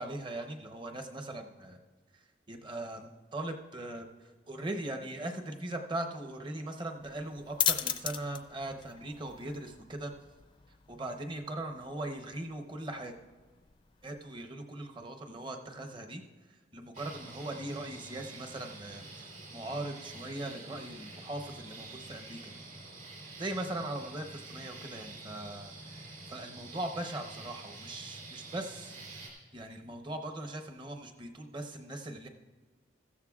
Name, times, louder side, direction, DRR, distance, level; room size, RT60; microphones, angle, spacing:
voice 1, 0.0-1.8 2.5-4.1 4.5-10.1 10.9-13.2 14.0-16.2 16.7-22.5 23.4-28.9 29.5-32.3, right 1 dB, 25° right, 4 dB, 0.8 m, -40 dB
sound 1, 7.0-14.3, left 9 dB, 25° left, 0.4 m, -38 dB
sound 2, 16.9-29.3, right 2 dB, 45° right, 3.4 m, -47 dB
15.0 x 13.0 x 2.4 m, 1.4 s
head